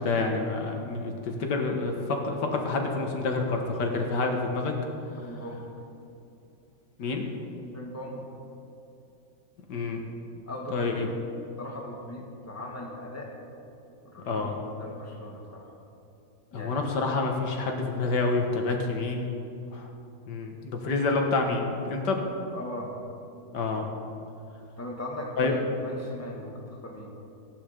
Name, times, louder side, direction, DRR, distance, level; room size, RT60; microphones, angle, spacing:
voice 1, 0.0-4.7 7.0-7.3 9.7-10.0 10.7-11.1 14.3-14.5 16.5-19.3 19.7-19.9 20.3-22.2 23.5-23.9 25.4-25.6, left 3 dB, 90° left, 2 dB, 2.0 m, -28 dB
voice 2, 5.2-5.7 7.7-8.2 10.5-11.1 11.6-13.3 14.0-15.7 16.5-16.9 22.5-22.9 24.8-27.1, left 1 dB, 10° left, -1 dB, 1.8 m, -39 dB
16.0 x 11.0 x 5.2 m, 2.7 s
omnidirectional pair, 1.8 m